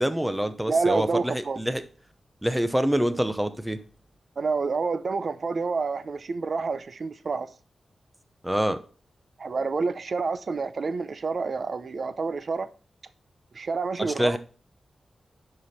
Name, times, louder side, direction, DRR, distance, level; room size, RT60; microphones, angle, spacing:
voice 1, 0.0-1.8 2.4-3.8 8.4-8.8 14.0-14.4, equal, 5° right, 0.7 m, -26 dB
voice 2, 0.7-1.6 4.4-7.5 9.4-12.7 13.5-14.4, right 4 dB, 50° right, 0.6 m, -28 dB
10.0 x 5.0 x 4.2 m
wide cardioid pair, 150°, 0 cm